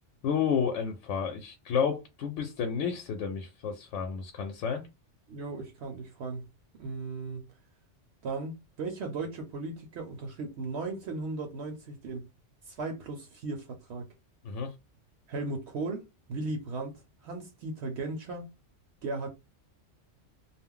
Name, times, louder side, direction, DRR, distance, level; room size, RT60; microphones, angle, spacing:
voice 1, 0.2-4.8 14.4-14.7, left 6 dB, 85° left, 0.9 m, -31 dB
voice 2, 5.3-6.5 6.8-7.5 8.2-12.3 12.7-14.1 15.3-18.5 19.0-19.3, right 3 dB, 70° right, 0.9 m, -36 dB
2.3 x 2.0 x 3.6 m
omnidirectional pair, 1.2 m